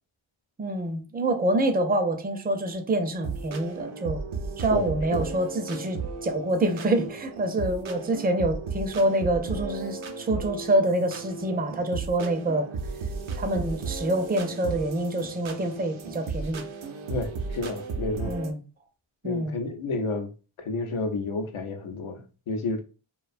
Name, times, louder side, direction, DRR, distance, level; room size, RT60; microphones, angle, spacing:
voice 1, 0.6-4.2 4.6-12.7 13.3-16.6 18.2-18.6 19.2-19.6, right 1 dB, 20° right, 0.4 m, -26 dB
sound 1, 3.2-18.5, right 4 dB, 75° right, 0.5 m, -35 dB
voice 2, 4.7-5.3 17.1-18.3 19.2-20.3 20.6-22.8, left 3 dB, 75° left, 0.6 m, -31 dB
2.5 x 2.2 x 2.4 m
wide cardioid pair, 55°, 49 cm